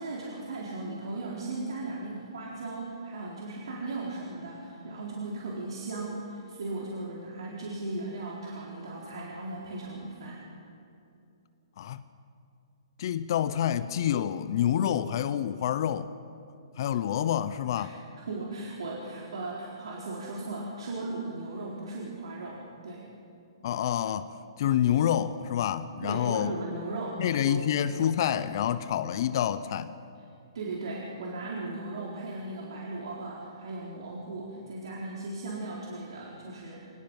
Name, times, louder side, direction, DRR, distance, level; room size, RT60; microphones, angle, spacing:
voice 1, 0.0-10.4 17.8-17.9 18.2-23.1 26.0-27.7 30.5-36.9, right 2 dB, 70° right, -4 dB, 4.0 m, -37 dB
voice 2, 13.0-16.1 16.8-17.9 23.6-24.3 24.6-26.5 27.2-29.9, left 10 dB, 50° left, 13 dB, 0.8 m, -27 dB
25.5 x 19.5 x 5.5 m, 2.7 s
hypercardioid pair, 140°, 3 cm